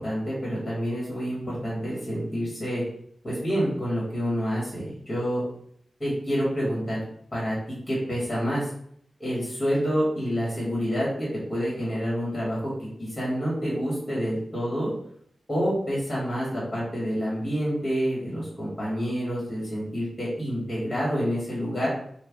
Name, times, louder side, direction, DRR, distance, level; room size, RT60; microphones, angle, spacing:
voice 1, 0.0-2.8 3.2-5.4 6.0-7.0 7.3-7.5 7.9-8.6 9.2-14.9 15.5-21.9, equal, 20° left, -6 dB, 1.4 m, -28 dB
3.3 x 2.2 x 3.4 m, 0.66 s
wide cardioid pair, 120°, 0 cm